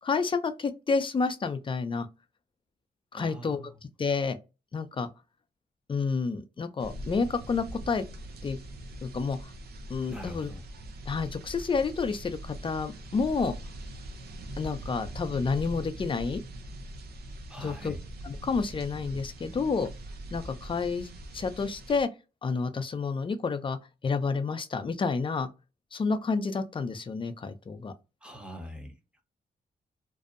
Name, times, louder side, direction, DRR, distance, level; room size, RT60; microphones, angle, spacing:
voice 1, 0.0-2.1 3.1-3.6 4.0-4.4 4.7-5.1 5.9-8.0 8.4-8.6 9.0-9.5 9.9-10.5 11.1-13.6 14.6-16.4 17.6-17.9 18.2-19.9 20.3-22.1 22.4-23.8 24.0-25.5 25.9-27.9, left 4 dB, 30° left, 0.4 m, -29 dB
voice 2, 3.1-3.8 10.1-10.6 17.5-18.0 28.2-29.2, equal, 5° right, 0.7 m, -43 dB
sound 1, 6.8-22.0, right 1 dB, 75° right, 0.5 m, -42 dB
2.6 x 2.0 x 2.4 m
cardioid pair, 95°, 17 cm